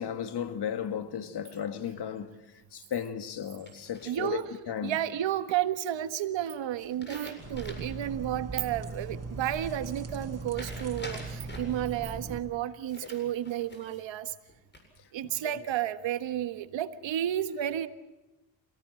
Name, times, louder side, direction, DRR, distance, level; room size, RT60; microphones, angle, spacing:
voice 1, 0.0-2.3 2.7-5.0 13.0-13.1 15.2-15.5, left 8 dB, 55° left, 2.1 m, -35 dB
sound 1, 3.7-4.6 6.8-8.0 8.4-8.5 10.5-11.8 12.9-14.0 14.5-15.1, left 1 dB, 20° left, 7.7 m, -46 dB
voice 2, 4.0-4.5 4.8-14.3 15.1-17.9, right 11 dB, 65° right, 1.6 m, -32 dB
sound 2, 7.4-12.4, right 3 dB, 30° right, 6.2 m, -39 dB
27.0 x 18.5 x 7.7 m
supercardioid pair, 70°, 48 cm